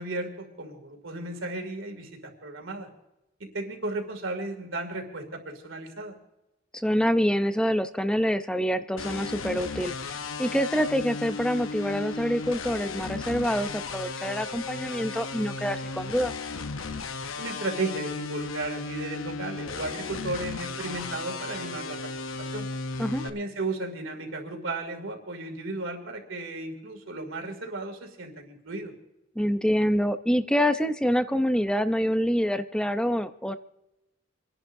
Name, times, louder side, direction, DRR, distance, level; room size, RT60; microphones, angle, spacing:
voice 1, 0.0-2.9 3.5-6.1 17.4-22.1 22.4-22.7 23.2-28.9, right 2 dB, 75° right, 3 dB, 2.7 m, -34 dB
voice 2, 6.7-9.9 10.4-16.3 23.0-23.2 29.4-33.6, equal, 5° left, 9 dB, 0.6 m, -26 dB
sound 1, 9.0-23.3, left 4 dB, 85° left, 0.9 m, -35 dB
28.5 x 11.0 x 2.7 m, 0.93 s
head